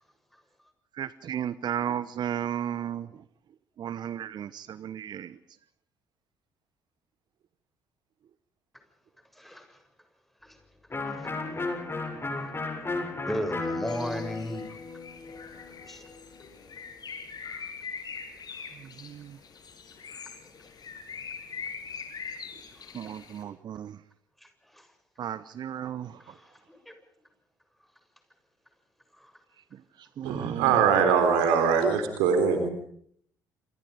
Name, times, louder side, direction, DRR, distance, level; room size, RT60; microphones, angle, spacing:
voice 1, 1.0-3.1 3.8-5.3 19.0-19.4 22.9-24.0 25.2-26.2 30.2-30.8, right 9 dB, 50° right, 1.0 m, -34 dB
voice 2, 9.3-9.8 10.4-10.6 11.0-11.3 13.2-14.7 15.9-16.0 22.8-22.9 24.4-24.9 26.2-27.0 29.2-29.3, equal, ahead, 7.1 m, -36 dB
Electric guitar, 10.9-16.5, left 3 dB, 25° left, 7.4 m, -34 dB
Bird, 13.9-23.4, left 6 dB, 45° left, 7.3 m, -42 dB
voice 3, 30.2-32.7, right 6 dB, 70° right, 3.8 m, -22 dB
27.5 x 26.0 x 5.2 m
figure-of-eight pair, 50°, 9 cm